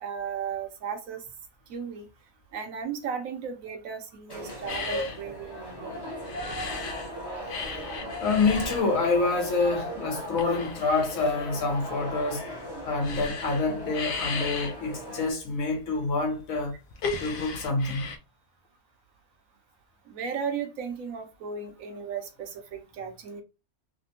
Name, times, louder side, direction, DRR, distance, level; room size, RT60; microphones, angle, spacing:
voice 1, 0.0-1.2 1.7-2.0 2.5-6.0 20.1-23.4, right 6 dB, 75° right, 1.1 m, -35 dB
sound 1, 4.3-15.3, equal, 20° left, 0.7 m, -38 dB
sound 2, 4.7-7.1 7.4-18.2, left 4 dB, 85° left, 0.4 m, -36 dB
voice 2, 8.2-12.5 12.9-16.7 17.2-18.1, left 3 dB, 70° left, 1.3 m, -27 dB
3.3 x 2.1 x 2.7 m
omnidirectional pair, 1.5 m